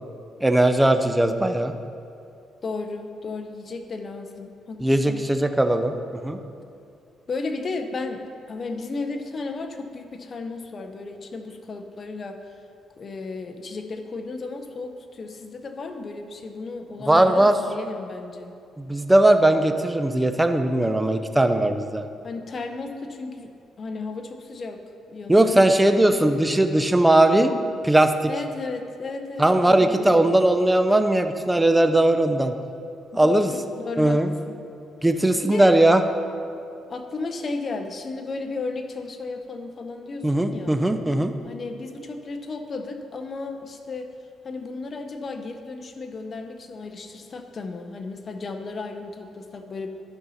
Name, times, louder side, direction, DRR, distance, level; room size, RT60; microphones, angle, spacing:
voice 1, 0.4-1.7 4.8-6.0 6.2-6.4 17.1-17.6 18.8-22.1 25.3-27.5 27.8-28.1 29.4-32.5 33.1-33.5 34.0-34.3 35.0-36.0 40.2-41.3, right 1 dB, 10° right, 8 dB, 0.6 m, -19 dB
voice 2, 2.6-5.2 7.3-12.4 13.0-18.5 22.2-23.5 23.8-24.8 25.1-26.3 28.3-30.3 33.1-34.2 34.5-34.6 35.4-35.7 36.9-40.7 41.4-44.1 44.4-49.9, left 3 dB, 45° left, 6 dB, 0.8 m, -34 dB
13.0 x 5.6 x 4.1 m, 2.5 s
cardioid pair, 90°, 0 cm